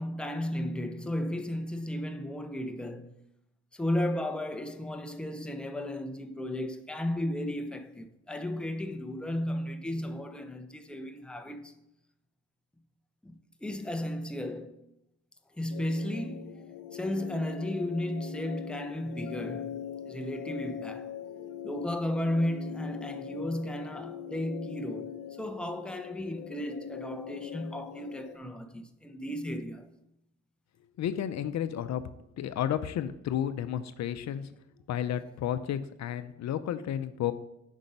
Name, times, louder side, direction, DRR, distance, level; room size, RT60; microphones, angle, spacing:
voice 1, 0.0-3.1 3.7-11.7 13.2-14.8 15.6-21.1 21.6-29.9, left 1 dB, 5° left, 0.7 m, -34 dB
sound 1, 15.7-28.4, left 9 dB, 85° left, 0.9 m, -42 dB
voice 2, 31.0-32.0 32.4-34.5 34.9-37.3, left 10 dB, 65° left, 0.6 m, -32 dB
8.9 x 5.4 x 5.4 m
cardioid pair, 90°, 30 cm